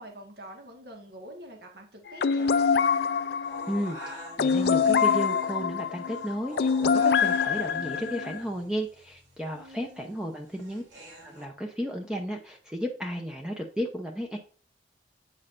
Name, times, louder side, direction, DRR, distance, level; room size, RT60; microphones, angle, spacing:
voice 1, 0.0-2.7 9.5-10.4, right 1 dB, 60° right, 2 dB, 1.6 m, -46 dB
sound 1, 2.2-8.4, left 6 dB, 60° left, 0.4 m, -25 dB
sound 2, 3.4-11.4, right 1 dB, 75° right, 2.9 m, -46 dB
voice 2, 3.7-10.8 11.2-14.4, equal, 5° right, 1 dB, 0.7 m, -33 dB
8.6 x 6.3 x 2.5 m, 0.42 s
head